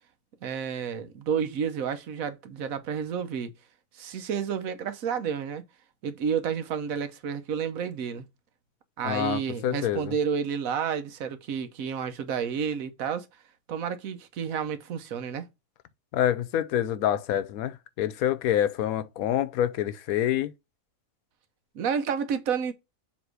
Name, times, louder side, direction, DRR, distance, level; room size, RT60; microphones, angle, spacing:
voice 1, 0.4-3.5 3.9-5.6 6.0-8.2 9.0-13.3 13.7-15.4 21.7-22.7, right 7 dB, 80° right, 1.2 m, -30 dB
voice 2, 9.0-10.1 16.1-20.5, left 11 dB, 90° left, 1.1 m, -27 dB
7.3 x 3.0 x 4.8 m
omnidirectional pair, 1.5 m